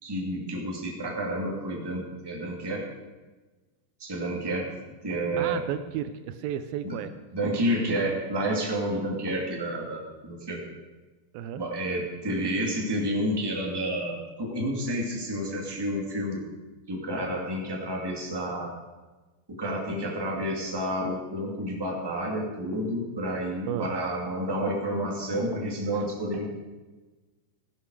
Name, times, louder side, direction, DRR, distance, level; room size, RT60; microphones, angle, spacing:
voice 1, 0.0-2.9 4.0-4.7 5.0-5.6 6.8-6.9 7.3-10.7 11.6-16.4 16.9-18.7 19.5-26.5, right 1 dB, 10° right, -2 dB, 1.9 m, -30 dB
voice 2, 5.4-7.1 11.3-11.6 23.7-24.0 26.0-26.1, right 9 dB, 80° right, 11 dB, 2.3 m, -33 dB
16.0 x 11.5 x 4.8 m, 1.2 s
omnidirectional pair, 4.3 m